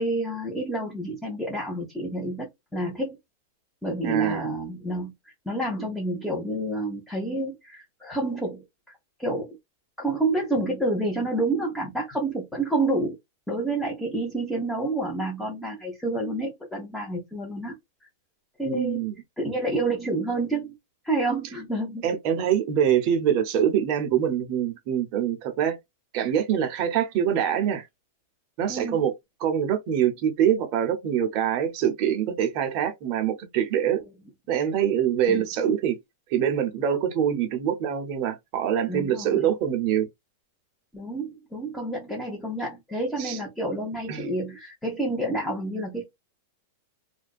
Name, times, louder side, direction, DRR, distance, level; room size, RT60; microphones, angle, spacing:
voice 1, 0.0-3.2 3.8-5.1 5.5-8.6 9.2-9.6 10.0-13.2 13.5-17.7 18.6-19.1 19.4-20.7 21.0-22.1 28.7-29.0 35.3-35.4 38.9-39.4 40.9-46.0, right 2 dB, 5° left, 0.9 m, -29 dB
voice 2, 4.0-4.5 18.6-19.2 22.0-25.8 26.1-27.8 28.6-29.1 29.4-34.0 34.5-36.0 36.3-40.1 43.2-43.4 44.1-44.3, right 9 dB, 45° right, 0.7 m, -24 dB
2.5 x 2.2 x 2.3 m
hypercardioid pair, 135°, 0 cm